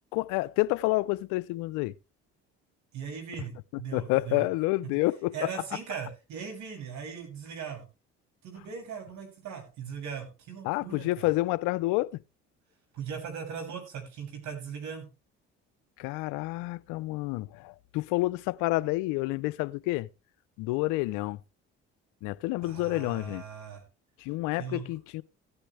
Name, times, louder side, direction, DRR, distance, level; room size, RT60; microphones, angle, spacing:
voice 1, 0.1-2.0 3.9-5.5 10.6-12.2 16.0-20.1 20.6-21.4 22.2-23.4 24.2-25.2, left 20 dB, 85° left, 0.6 m, -29 dB
voice 2, 2.9-4.4 5.3-7.9 8.4-11.3 12.9-15.0 22.6-23.8 24.6-24.8, right 7 dB, 70° right, 6.6 m, -39 dB
16.0 x 10.0 x 3.2 m
supercardioid pair, 80°, 30 cm